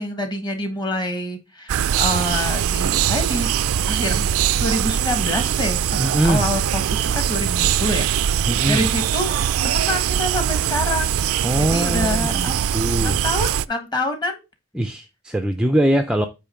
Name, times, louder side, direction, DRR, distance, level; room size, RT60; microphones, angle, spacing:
voice 1, 0.0-3.5 3.9-8.1 8.7-9.4 9.6-11.1 11.6-12.6 13.0-14.4, left 1 dB, 20° left, 1.5 m, -26 dB
sound 1, 1.7-13.7, right 9 dB, 85° right, 0.4 m, -21 dB
voice 2, 6.0-6.5 8.5-8.9 11.4-13.2 14.7-16.3, equal, 5° right, 0.4 m, -22 dB
8.5 x 3.1 x 5.7 m
head